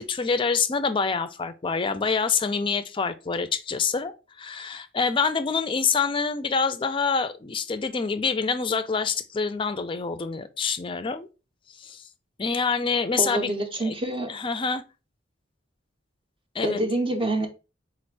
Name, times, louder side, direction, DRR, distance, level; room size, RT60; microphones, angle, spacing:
voice 1, 0.0-4.1 4.4-11.3 11.7-12.1 12.4-13.5 13.8-14.0 14.3-14.8 16.5-16.8, left 5 dB, 25° left, 0.4 m, -26 dB
voice 2, 13.2-14.3 16.6-17.5, right 1 dB, 25° right, 0.6 m, -26 dB
4.3 x 2.4 x 4.4 m
head